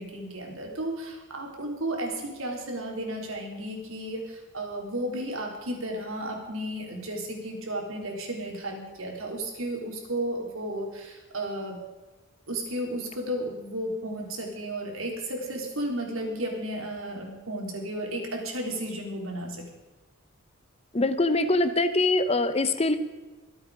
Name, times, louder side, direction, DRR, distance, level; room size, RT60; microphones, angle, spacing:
voice 1, 0.0-11.8 12.5-19.7, right 1 dB, 85° right, 1 dB, 3.9 m, -33 dB
voice 2, 20.9-23.0, left 2 dB, 30° left, 11 dB, 0.9 m, -23 dB
24.5 x 8.4 x 5.1 m, 1.2 s
head